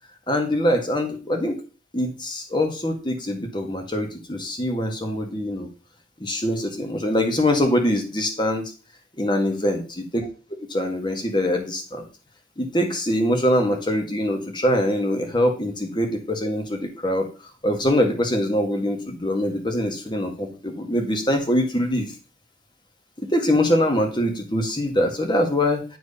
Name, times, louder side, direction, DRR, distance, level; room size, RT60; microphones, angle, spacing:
voice 1, 0.3-1.6 1.9-5.7 6.2-8.6 9.2-9.8 10.1-10.2 10.7-12.1 12.6-17.3 17.6-22.1 23.2-25.8, left 1 dB, 25° left, 4 dB, 1.7 m, -23 dB
10.0 x 4.7 x 5.5 m, 0.35 s
head